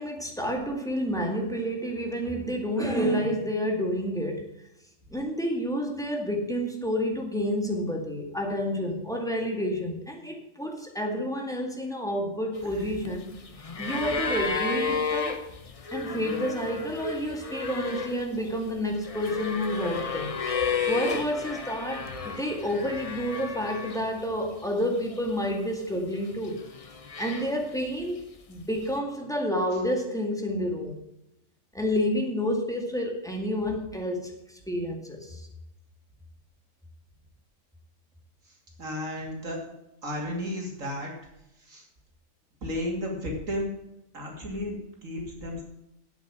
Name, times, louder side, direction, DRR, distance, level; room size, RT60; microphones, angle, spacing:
voice 1, 0.0-4.5 5.1-13.3 13.8-15.4 15.9-20.3 20.9-26.6 27.2-30.9 31.7-34.3 34.7-35.5, equal, ahead, 1 dB, 2.0 m, -29 dB
sound 1, 12.5-24.2 24.5-25.4 26.2-27.9 28.9-29.0, left 4 dB, 30° left, 0.7 m, -33 dB
voice 2, 38.8-39.6 40.0-41.1 41.7-41.8 42.6-43.7 44.1-45.6, left 1 dB, 70° right, -1 dB, 3.0 m, -33 dB
8.3 x 8.3 x 7.6 m, 0.85 s
omnidirectional pair, 1.4 m